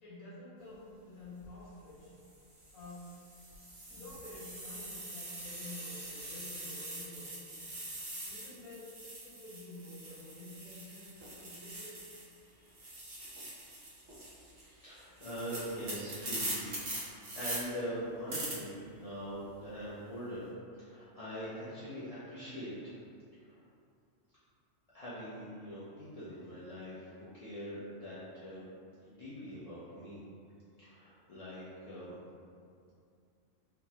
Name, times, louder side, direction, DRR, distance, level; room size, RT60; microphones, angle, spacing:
voice 1, 0.0-2.1 2.7-3.1 3.9-7.5 8.2-12.0, left 2 dB, 85° left, -9 dB, 1.3 m, -50 dB
sound 1, 1.2-1.5 2.2-12.4 12.7-17.6 18.3-18.5, right 1 dB, 70° right, 1.2 m, -43 dB
voice 2, 14.5-16.7 17.3-20.4 20.7-23.0 23.4-23.6 24.9-28.6 29.1-30.2 30.8-32.2, equal, 65° left, -11 dB, 0.3 m, -43 dB
3.4 x 2.0 x 2.8 m, 2.4 s
omnidirectional pair, 1.4 m